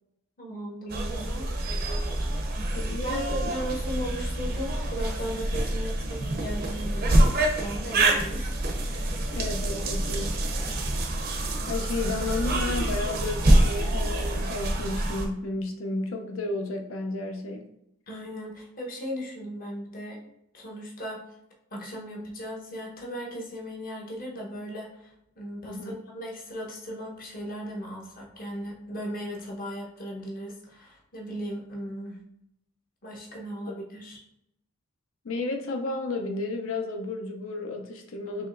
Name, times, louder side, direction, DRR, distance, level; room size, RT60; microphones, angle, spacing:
voice 1, 0.4-1.5 3.0-8.6 18.1-20.2 20.5-21.2 21.7-25.1 25.4-32.2 33.0-34.2, equal, 40° left, -2 dB, 0.9 m, -37 dB
sound 1, 0.9-15.3, right 1 dB, 45° right, 0.6 m, -26 dB
voice 2, 2.7-3.5 9.3-10.4 11.7-17.7 25.6-25.9 35.2-38.5, left 2 dB, 65° left, 4 dB, 0.6 m, -32 dB
4.7 x 3.1 x 2.5 m, 0.78 s
head